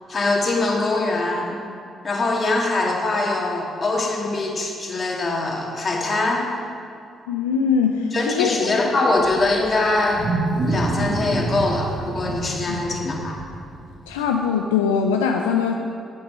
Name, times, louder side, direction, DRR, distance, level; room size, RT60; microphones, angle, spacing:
voice 1, 0.1-1.6 2.0-6.5 8.1-10.2 10.7-13.3, left 2 dB, 45° left, -1 dB, 2.1 m, -23 dB
voice 2, 7.3-8.7 12.7-12.8 14.1-15.7, left 6 dB, 90° left, 3 dB, 0.4 m, -21 dB
Wild animals, 9.2-14.2, right 2 dB, 65° right, 1.4 m, -27 dB
9.5 x 8.4 x 5.5 m, 2.4 s
hypercardioid pair, 45°, 0 cm